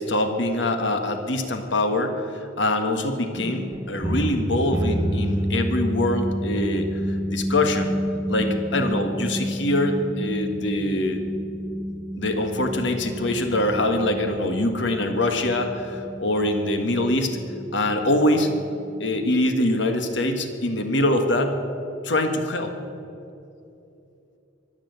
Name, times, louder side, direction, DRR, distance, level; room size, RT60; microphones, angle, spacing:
voice 1, 0.0-8.0 8.3-11.2 12.2-17.4 17.7-18.5 19.0-21.6 22.0-22.7, left 1 dB, 65° left, 6 dB, 1.6 m, -24 dB
sound 1, 3.3-19.5, equal, 15° right, 0.6 m, -30 dB
23.0 x 7.8 x 8.0 m, 2.7 s
head